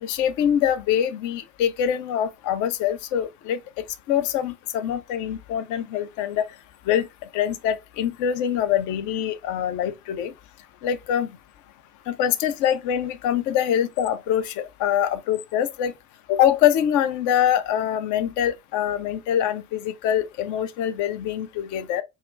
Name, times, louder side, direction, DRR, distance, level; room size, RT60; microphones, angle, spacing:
voice 1, 0.0-3.6 4.1-6.4 6.9-7.1 7.3-10.3 10.8-11.3 12.1-15.9 16.3-22.0, left 10 dB, 45° left, 0.5 m, -24 dB
4.1 x 2.4 x 2.5 m
figure-of-eight pair, 50°, 42 cm